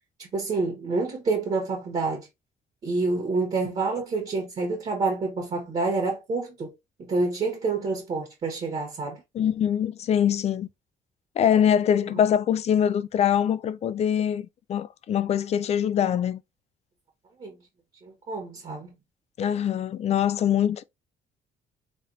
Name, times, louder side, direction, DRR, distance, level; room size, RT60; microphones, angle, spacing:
voice 1, 0.2-2.3 2.8-6.7 7.0-9.2 12.1-12.2 17.4-17.6 18.0-18.9, right 3 dB, 40° right, 1.3 m, -28 dB
voice 2, 9.3-10.7 11.4-16.4 19.4-20.8, left 9 dB, 40° left, 0.3 m, -23 dB
3.6 x 3.4 x 2.7 m
cardioid pair, 135°, 16 cm